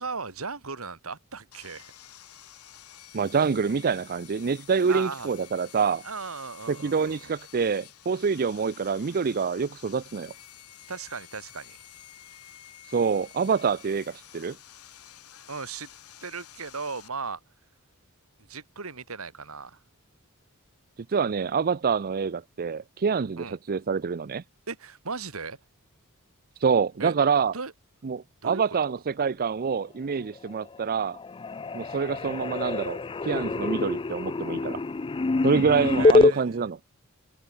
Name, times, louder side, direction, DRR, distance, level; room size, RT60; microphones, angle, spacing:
voice 1, 0.0-1.9 4.9-5.3 6.0-7.2 10.9-11.8 15.5-15.9 16.2-17.4 18.5-19.8 23.4-23.6 24.7-25.6 27.0-27.1 27.5-27.7 28.4-29.0 36.0-36.7, right 4 dB, 70° right, 2.2 m, -37 dB
Sawing, 1.5-17.1, left 11 dB, 90° left, 3.6 m, -50 dB
voice 2, 3.1-6.0 6.7-10.3 12.9-14.6 21.1-24.4 26.6-27.5 28.0-31.2 31.7-34.8 35.4-36.8, right 5 dB, 40° right, 0.5 m, -26 dB
sound 1, 30.3-30.9 31.1-36.3, left 3 dB, 25° left, 0.4 m, -25 dB
head